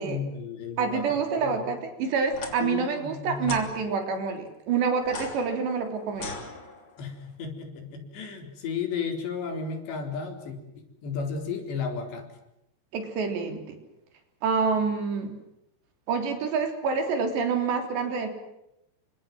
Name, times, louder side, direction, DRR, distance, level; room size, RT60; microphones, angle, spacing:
voice 1, 0.0-1.7 2.6-3.6 7.0-12.3, left 5 dB, 85° left, 5 dB, 6.2 m, -34 dB
voice 2, 0.8-6.3 12.9-13.8 14.4-15.4 16.1-18.3, right 5 dB, 85° right, 5 dB, 5.7 m, -27 dB
sound 1, 2.3-2.5 3.4-3.7 5.0-7.0, left 3 dB, 30° left, 3.4 m, -38 dB
28.5 x 25.5 x 7.6 m, 0.86 s
omnidirectional pair, 4.9 m